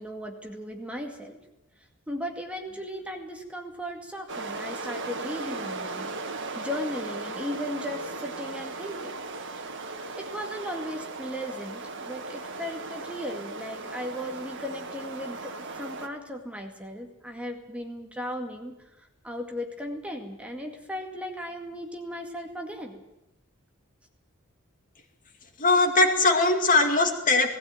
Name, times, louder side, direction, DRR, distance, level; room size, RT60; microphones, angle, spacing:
voice 1, 0.0-1.4 2.1-6.1 6.5-9.2 9.5-9.8 10.2-23.0, equal, 5° right, 3 dB, 2.1 m, -36 dB
sound 1, 4.3-16.1, right 3 dB, 60° right, 1.8 m, -37 dB
voice 2, 25.6-27.5, left 2 dB, 40° left, 5 dB, 2.3 m, -21 dB
18.5 x 16.5 x 9.1 m, 0.91 s
head